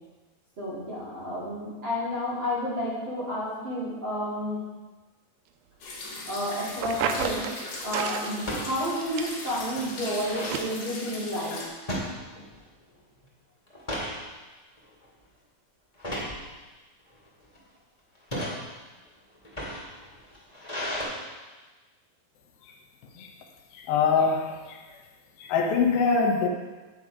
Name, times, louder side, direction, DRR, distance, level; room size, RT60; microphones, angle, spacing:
voice 1, 0.6-4.6 6.2-11.6, left 1 dB, 35° right, 3.2 m, -31 dB
sound 1, 5.8-11.7, left 2 dB, 55° left, 3.5 m, -39 dB
sound 2, 6.6-7.0 8.4-8.7 9.2-9.3 9.5-10.6 11.9-12.7 13.0-13.3 13.7-14.2 14.8-15.0 16.0-16.4 17.1-17.6 18.1-18.6 19.3-21.0, equal, 15° left, 1.5 m, -34 dB
sound 3, 6.8-7.6 7.9-8.3 8.7-9.6 10.0-10.1 10.5-10.6, right 8 dB, 85° right, 2.5 m, -31 dB
voice 2, 23.9-24.6 25.5-26.5, left 5 dB, 80° left, 2.8 m, -22 dB
9.8 x 8.5 x 4.9 m
omnidirectional pair, 4.2 m